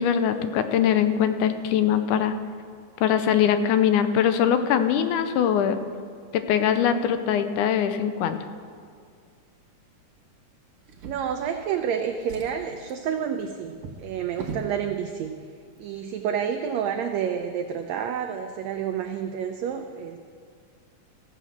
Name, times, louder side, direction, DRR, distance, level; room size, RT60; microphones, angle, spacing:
voice 1, 0.0-2.4 3.0-5.8 6.3-8.4, left 8 dB, 85° left, 10 dB, 2.2 m, -22 dB
Drawer open or close, 10.8-11.8 12.2-14.8 15.7-15.8 16.2-16.3, right 4 dB, 60° right, 1.6 m, -41 dB
voice 2, 11.0-13.7 14.0-15.3 15.8-20.3, right 8 dB, 75° right, 5 dB, 1.6 m, -29 dB
14.5 x 7.1 x 7.2 m, 2.1 s
omnidirectional pair, 3.5 m